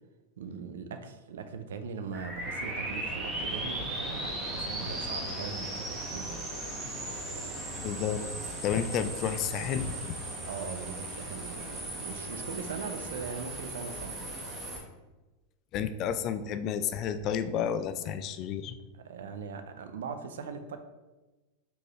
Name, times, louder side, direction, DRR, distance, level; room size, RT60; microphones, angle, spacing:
voice 1, 0.4-6.4 10.4-14.2 18.9-20.8, right 5 dB, 85° right, 8 dB, 0.4 m, -40 dB
sound 1, 2.1-14.8, right 1 dB, 20° right, 1.3 m, -37 dB
voice 2, 7.8-8.2 8.6-10.2 15.7-18.8, left 8 dB, 45° left, 10 dB, 0.3 m, -31 dB
4.4 x 3.2 x 3.1 m, 1.1 s
hypercardioid pair, 115°, 0 cm